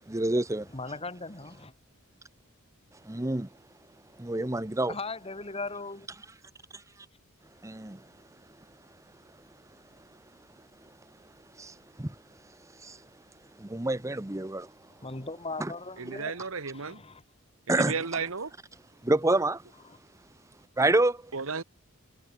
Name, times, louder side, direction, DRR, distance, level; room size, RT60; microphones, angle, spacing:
voice 1, 0.1-0.7 3.1-3.5 4.2-4.9 7.6-8.0 11.6-11.7 12.0-12.1 12.8-13.0 13.6-14.7 15.6-15.7 17.7-17.9 19.0-19.6 20.8-21.2, right 2 dB, 15° right, 0.8 m, -27 dB
voice 2, 0.7-1.7 4.9-6.1 15.0-16.4 16.7-17.2 19.8-20.0, left 3 dB, 25° left, 3.1 m, -38 dB
voice 3, 16.0-17.0 17.7-18.5 21.3-21.6, right 5 dB, 70° right, 1.4 m, -33 dB
head